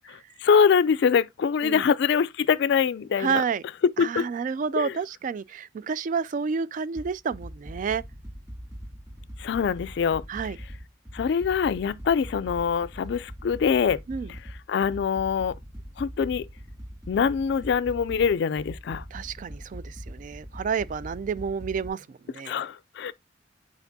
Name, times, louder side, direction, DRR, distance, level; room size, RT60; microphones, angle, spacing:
voice 1, 0.4-3.4 4.0-4.3 4.7-4.9 9.4-10.2 11.1-14.0 14.3-14.4 14.7-15.5 16.0-16.5 17.1-19.0 22.5-23.1, left 6 dB, 65° left, 0.3 m, -24 dB
voice 2, 3.2-3.6 4.0-8.0 10.3-10.6 14.1-14.3 19.1-22.5, right 6 dB, 45° right, 0.3 m, -30 dB
sound 1, 6.9-21.9, equal, 20° right, 2.4 m, -42 dB
8.2 x 4.4 x 2.6 m
head